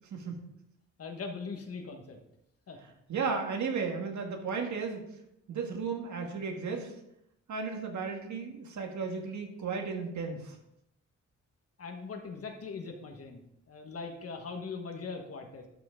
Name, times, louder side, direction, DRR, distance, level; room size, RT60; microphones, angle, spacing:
voice 1, 0.1-0.5 3.1-5.0 5.5-6.9 7.5-10.6, right 5 dB, 70° right, 2 dB, 1.8 m, -34 dB
voice 2, 1.0-2.2 2.7-2.8 11.8-15.7, left 4 dB, 50° left, 4 dB, 1.4 m, -41 dB
12.5 x 5.8 x 3.7 m, 0.79 s
wide cardioid pair, 145°, 30 cm